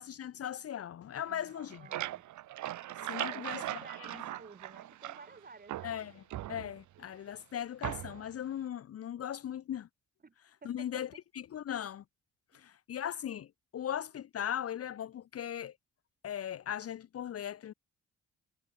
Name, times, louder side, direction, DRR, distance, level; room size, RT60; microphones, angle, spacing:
voice 1, 0.0-1.9 3.0-3.6 5.8-6.2 6.5-9.9 10.6-11.1 11.3-12.0 12.5-13.5 13.7-15.7 16.2-17.7, left 10 dB, 50° left, 0.9 m, -38 dB
voice 2, 1.3-2.3 3.2-6.1 10.2-10.3 10.6-11.0 12.5-12.6, right 4 dB, 30° right, 7.0 m, -53 dB
sound 1, 1.4-5.4 5.7-7.0 7.8-8.3, right 14 dB, 70° right, 1.1 m, -40 dB
cardioid pair, 90°, 30 cm